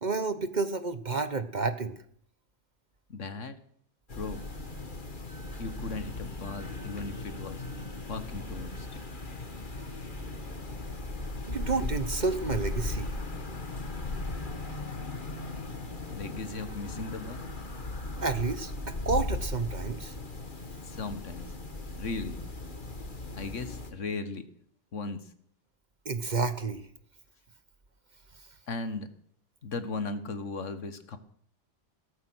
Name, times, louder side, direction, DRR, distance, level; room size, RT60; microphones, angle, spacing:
voice 1, 0.0-1.9 11.5-13.1 18.2-20.1 26.0-26.8, right 4 dB, 40° right, 11 dB, 1.1 m, -30 dB
voice 2, 3.1-3.6 4.1-4.4 5.6-7.7 8.1-8.9 16.1-17.5 20.8-21.5 22.0-22.4 23.3-24.5 24.9-25.3 28.7-29.1 29.6-31.2, left 3 dB, 75° left, 11 dB, 1.8 m, -37 dB
sound 1, 4.1-23.9, left 2 dB, 40° left, 2.0 m, -37 dB
17.0 x 13.0 x 6.3 m, 0.63 s
omnidirectional pair, 1.3 m